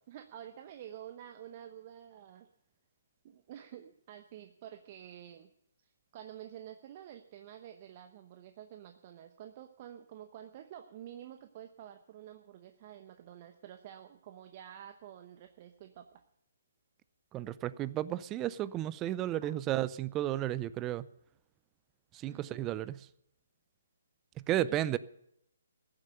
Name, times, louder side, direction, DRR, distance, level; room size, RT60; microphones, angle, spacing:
voice 1, 0.1-2.5 3.2-5.5 5.8-16.2 19.4-19.5 22.2-22.7 24.7-24.8, right 10 dB, 40° right, 0.9 m, -49 dB
voice 2, 17.3-21.0 22.1-23.0 24.5-25.0, right 13 dB, 20° right, 0.4 m, -33 dB
15.0 x 7.6 x 8.9 m
hypercardioid pair, 145°, 0 cm